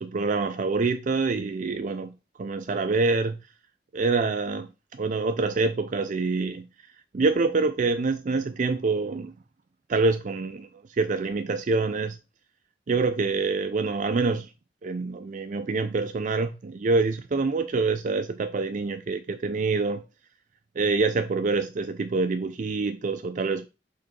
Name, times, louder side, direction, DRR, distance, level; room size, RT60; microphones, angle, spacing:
voice 1, 0.0-2.1 2.4-3.4 3.9-6.7 7.1-9.3 9.9-10.7 11.0-12.2 12.9-14.5 14.8-20.0 20.8-23.7, right 3 dB, 45° right, 0.4 m, -26 dB
5.6 x 3.8 x 5.2 m
head